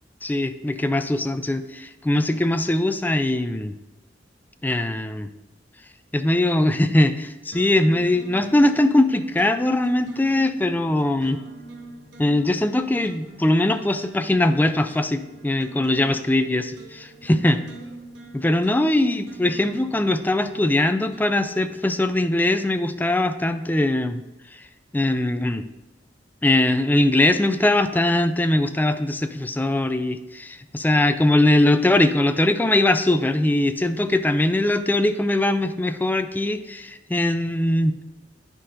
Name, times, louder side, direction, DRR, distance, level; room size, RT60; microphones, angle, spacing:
voice 1, 0.2-1.6 2.1-3.7 4.6-5.3 6.1-11.4 12.2-17.6 18.3-24.2 24.9-25.6 26.4-38.0, left 1 dB, 10° left, 9 dB, 0.3 m, -21 dB
sound 1, 7.5-22.3, right 2 dB, 85° right, 1.1 m, -45 dB
9.7 x 4.2 x 3.8 m, 1.1 s
head